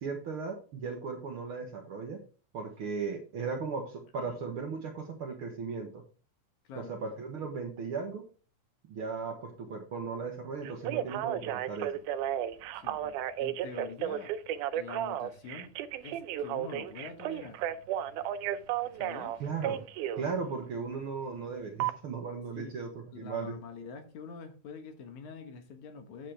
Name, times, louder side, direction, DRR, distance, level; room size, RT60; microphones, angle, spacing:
voice 1, 0.0-2.2 2.5-6.0 6.8-8.2 8.9-11.9 19.4-19.8 20.2-23.6, right 5 dB, 55° right, 1.6 m, -37 dB
voice 2, 6.6-7.0 12.7-14.3 14.7-15.7 16.0-17.6 18.9-19.3 22.6-22.7 23.2-26.3, left 5 dB, 70° left, 2.6 m, -45 dB
Telephone, 10.6-20.2 21.8-21.9, right 11 dB, 85° right, 2.1 m, -33 dB
9.1 x 7.5 x 3.3 m
omnidirectional pair, 3.6 m